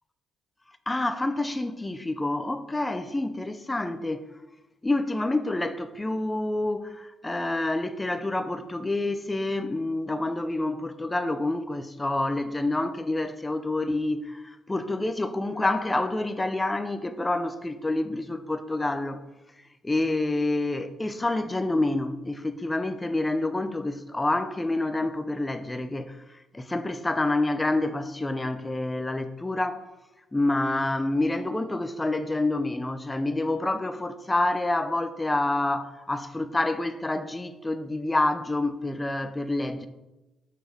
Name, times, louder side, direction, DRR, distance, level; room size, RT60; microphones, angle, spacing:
voice 1, 0.9-4.2 4.8-19.2 19.8-26.2 26.5-29.8 30.3-39.9, left 2 dB, 10° left, 0.6 m, -28 dB
7.2 x 6.4 x 6.5 m
cardioid pair, 145°, 0 cm